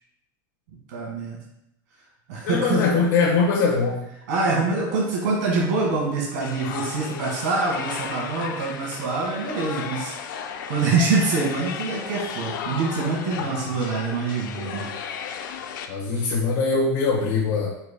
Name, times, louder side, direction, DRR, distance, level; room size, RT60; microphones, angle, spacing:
voice 1, 0.9-1.4 2.3-2.9 4.3-14.8 16.1-16.3, right 3 dB, 65° right, -2 dB, 1.8 m, -25 dB
voice 2, 2.4-4.0 13.4-13.5 15.9-17.7, left 4 dB, 60° left, -6 dB, 1.3 m, -22 dB
sound 1, 6.4-15.9, left 7 dB, 90° left, 0.6 m, -34 dB
9.3 x 4.5 x 2.2 m, 0.79 s
supercardioid pair, 180°, 10 cm